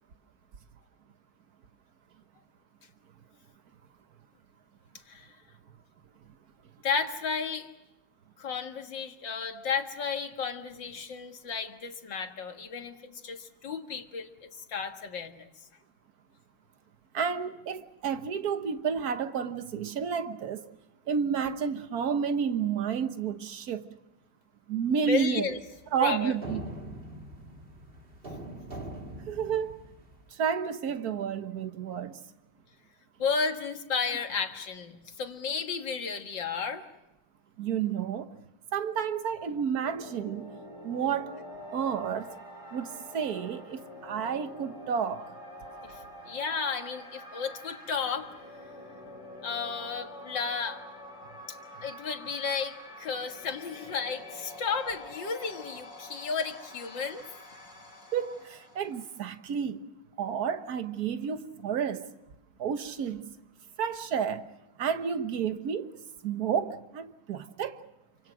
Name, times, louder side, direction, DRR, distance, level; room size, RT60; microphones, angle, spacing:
voice 1, 6.8-7.7 8.4-15.5 25.1-25.6 26.0-26.3 33.2-36.8 45.8-48.3 49.4-50.8 51.5-51.6 51.8-57.3, left 5 dB, 60° left, 2.3 m, -33 dB
voice 2, 17.1-20.6 21.1-23.9 24.7-25.6 25.9-26.6 29.3-29.7 30.4-32.2 37.6-38.3 38.7-40.5 40.8-41.3 41.7-42.3 42.7-45.2 58.1-59.8 60.2-62.0 62.6-63.3 63.8-64.5 64.8-65.9 66.2-67.8, right 7 dB, 50° right, 1.5 m, -31 dB
sound 1, 25.5-30.3, right 1 dB, 25° right, 2.2 m, -43 dB
sound 2, 39.5-59.4, left 1 dB, 15° left, 5.7 m, -47 dB
28.5 x 25.5 x 6.3 m
omnidirectional pair, 2.3 m